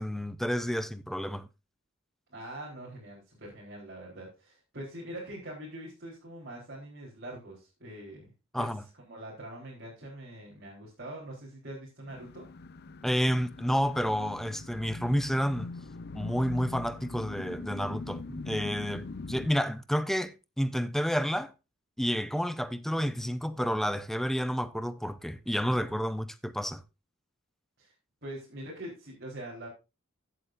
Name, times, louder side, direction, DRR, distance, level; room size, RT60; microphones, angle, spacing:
voice 1, 0.0-1.5 8.5-8.8 13.0-15.7 16.1-21.5 22.0-26.8, equal, ahead, 0.6 m, -30 dB
voice 2, 2.3-8.3 8.6-8.7 9.1-12.5 27.8-27.9 28.2-29.7, right 1 dB, 50° right, 4.1 m, -43 dB
sound 1, 12.1-19.5, left 3 dB, 50° left, 0.6 m, -42 dB
15.5 x 8.0 x 2.6 m
head